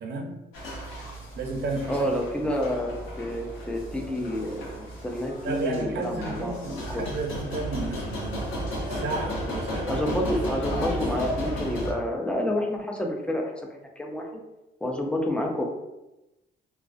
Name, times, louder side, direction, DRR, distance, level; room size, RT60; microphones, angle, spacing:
voice 1, 0.0-0.3 1.3-1.9 5.4-8.5 8.9-10.0, right 3 dB, 60° right, 2 dB, 0.5 m, -32 dB
sound 1, 0.5-11.9, equal, 90° left, 0.7 m, -33 dB
voice 2, 1.9-6.6 6.9-7.0 9.9-14.4 14.8-15.6, left 1 dB, 5° left, 1 dB, 0.4 m, -29 dB
2.3 x 2.1 x 2.4 m, 0.97 s
cardioid pair, 90°, 20 cm